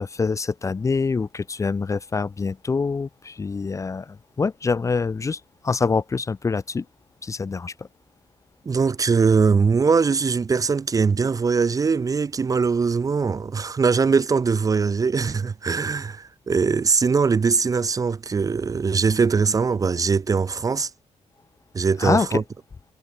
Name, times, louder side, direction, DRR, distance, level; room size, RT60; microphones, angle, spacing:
voice 1, 0.0-6.8 7.2-7.9 22.0-22.4, left 4 dB, 25° left, 1.0 m, -25 dB
voice 2, 8.6-20.9 21.7-22.4, right 5 dB, 30° right, 0.9 m, -21 dB
wide cardioid pair, 155°, 13 cm